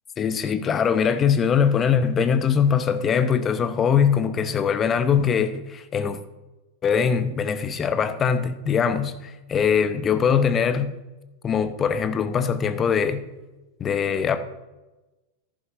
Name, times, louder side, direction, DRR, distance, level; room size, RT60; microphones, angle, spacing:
voice 1, 0.2-6.2 6.8-11.0 11.4-13.3 13.8-14.4, left 7 dB, 25° left, 0.8 m, -22 dB
14.0 x 11.0 x 2.6 m
figure-of-eight pair, 90°, 0 cm